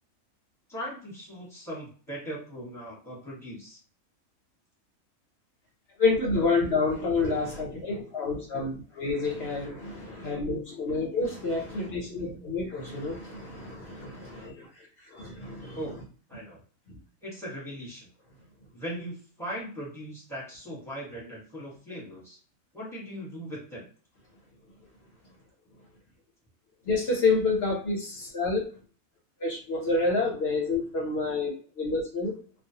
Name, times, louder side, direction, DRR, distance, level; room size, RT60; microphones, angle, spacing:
voice 1, 0.7-3.8 15.7-15.9 16.3-16.6 17.2-18.1 18.7-22.4 22.7-23.9, equal, ahead, -6 dB, 1.0 m, -39 dB
voice 2, 6.0-14.7 15.1-15.8 16.9-17.0 26.9-28.7 29.4-32.3, left 3 dB, 55° left, 0 dB, 0.8 m, -28 dB
2.4 x 2.3 x 2.7 m, 0.41 s
omnidirectional pair, 1.4 m